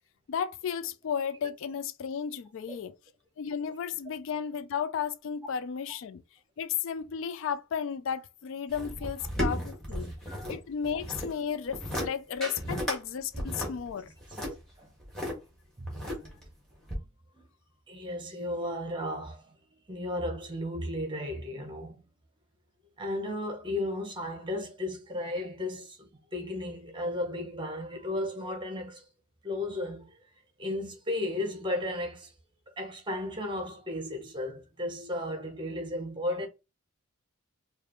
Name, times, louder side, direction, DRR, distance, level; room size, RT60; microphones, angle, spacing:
voice 1, 0.3-2.9 3.4-6.2 6.6-10.1 10.5-14.1, left 7 dB, 60° left, 0.3 m, -34 dB
sound 1, 8.7-10.6 10.8-11.3 11.7-12.1 12.4-13.0 13.3-15.3 15.9-16.5 16.9-17.0, equal, 5° left, 1.5 m, -34 dB
voice 2, 17.9-19.5 19.9-22.0 23.0-29.0 29.4-30.2 30.6-32.3 32.8-36.5, left 1 dB, 20° right, 0.9 m, -34 dB
4.8 x 2.5 x 3.0 m
head